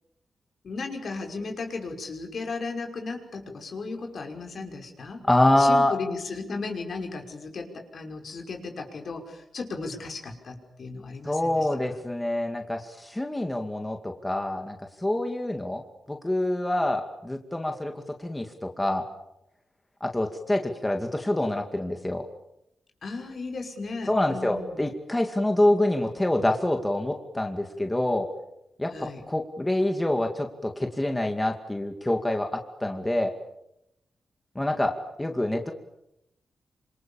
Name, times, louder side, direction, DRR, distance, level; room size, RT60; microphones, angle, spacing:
voice 1, 0.6-5.2 5.6-12.0 23.0-24.9 28.9-29.2, left 3 dB, 60° left, 3 dB, 5.6 m, -35 dB
voice 2, 5.3-6.0 11.2-15.8 16.1-17.9 18.2-19.0 20.0-22.3 24.1-28.3 28.8-33.3 34.6-35.7, left 1 dB, 10° left, 4 dB, 2.3 m, -26 dB
27.5 x 27.0 x 7.2 m, 0.82 s
wide cardioid pair, 100°, 0 cm